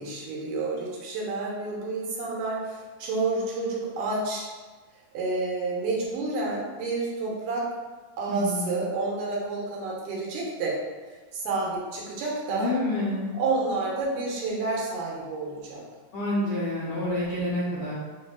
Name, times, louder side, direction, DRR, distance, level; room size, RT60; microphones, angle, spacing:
voice 1, 0.0-4.5 5.1-7.7 8.2-10.8 11.3-12.7 13.3-15.8, right 3 dB, 85° right, -4 dB, 2.5 m, -29 dB
voice 2, 8.3-8.7 12.5-13.3 16.1-17.9, left 1 dB, 70° left, -11 dB, 1.3 m, -28 dB
6.0 x 2.7 x 2.4 m, 1.4 s
omnidirectional pair, 3.7 m